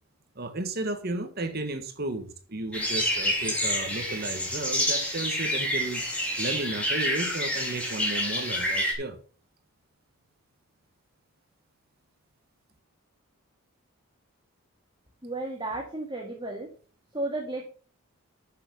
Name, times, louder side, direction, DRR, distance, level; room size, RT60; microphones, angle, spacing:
voice 1, 0.3-6.0 6.4-9.2, right 2 dB, 45° right, 1.4 m, -33 dB
sound 1, 2.7-8.9, equal, 5° left, 3.3 m, -28 dB
voice 2, 15.2-16.7 17.1-17.6, right 2 dB, 20° right, 1.8 m, -33 dB
11.5 x 6.9 x 5.2 m
head